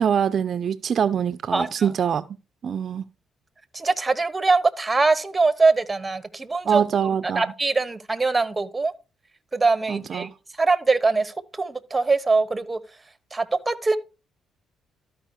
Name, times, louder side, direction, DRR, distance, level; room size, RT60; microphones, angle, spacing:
voice 1, 0.0-2.3 2.6-3.0 6.7-7.5 9.9-10.3, right 8 dB, 55° right, 0.4 m, -24 dB
voice 2, 1.5-1.9 3.7-6.8 7.4-8.9 9.5-10.3 10.6-12.8 13.3-14.0, right 3 dB, 20° right, 0.9 m, -22 dB
13.0 x 4.9 x 4.6 m
cardioid pair, 80°, 0 cm